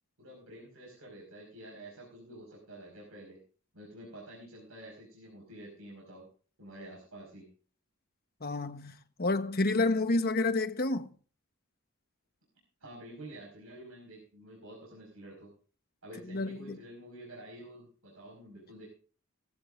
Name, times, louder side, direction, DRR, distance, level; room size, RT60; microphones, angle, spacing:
voice 1, 0.2-3.4 3.7-6.3 6.6-7.5 12.8-15.5 16.0-18.9, right 1 dB, 85° right, 5.3 m, -49 dB
voice 2, 8.4-11.1 16.3-16.8, left 2 dB, 45° left, 1.2 m, -29 dB
19.0 x 15.0 x 2.6 m
head